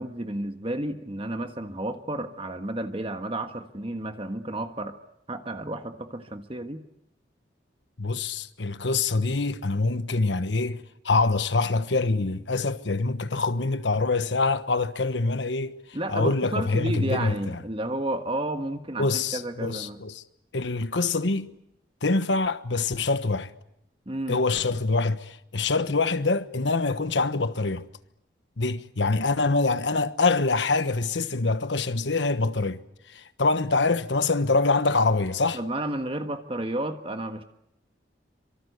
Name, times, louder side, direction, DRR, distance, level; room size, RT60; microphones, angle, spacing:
voice 1, 0.0-4.9 5.3-6.8 15.9-20.0 24.1-24.4 35.5-37.4, right 1 dB, 30° right, 1.5 m, -32 dB
voice 2, 8.0-17.6 19.0-20.2 20.5-21.5 22.0-23.5 24.3-27.8 28.6-32.8 33.1-35.6, left 3 dB, 85° left, 1.3 m, -25 dB
26.0 x 24.5 x 8.2 m
head